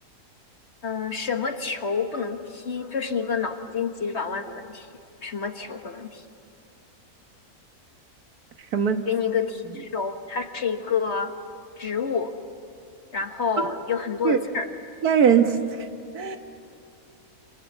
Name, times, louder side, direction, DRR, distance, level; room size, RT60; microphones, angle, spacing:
voice 1, 0.8-4.9 5.2-6.2 9.1-11.3 11.8-12.3 13.1-14.7, left 6 dB, 45° left, 6 dB, 1.6 m, -28 dB
voice 2, 8.7-9.0 14.2-14.4 15.0-15.6 16.1-16.4, right 7 dB, 75° right, 6 dB, 1.8 m, -19 dB
28.5 x 27.5 x 7.4 m, 2.3 s
omnidirectional pair, 1.6 m